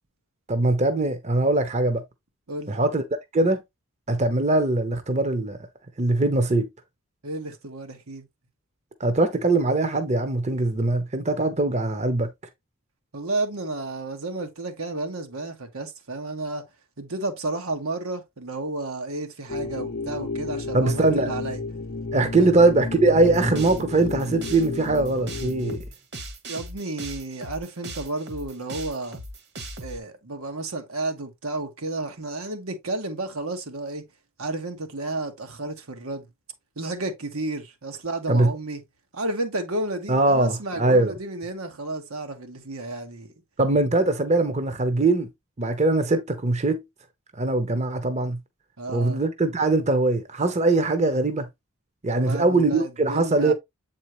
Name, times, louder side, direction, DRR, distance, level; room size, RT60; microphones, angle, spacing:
voice 1, 0.5-2.0 2.7-3.0 3.3-3.6 4.1-5.6 6.0-6.7 9.0-12.3 20.7-21.3 22.1-25.8 38.3-38.5 40.1-41.1 43.6-45.3 45.6-46.8 47.4-48.4 48.9-51.5 52.0-53.5, right 2 dB, 30° right, 0.8 m, -21 dB
voice 2, 7.2-8.3 13.1-16.6 17.0-21.6 22.4-22.5 26.5-29.2 29.8-34.0 34.4-36.3 36.8-38.8 39.1-43.3 44.0-44.1 48.8-49.2 52.1-53.5, right 2 dB, 85° right, 1.4 m, -32 dB
sound 1, 19.5-25.8, left 3 dB, 45° left, 0.5 m, -32 dB
sound 2, 23.1-30.0, right 1 dB, 50° right, 1.3 m, -38 dB
7.8 x 4.3 x 3.1 m
head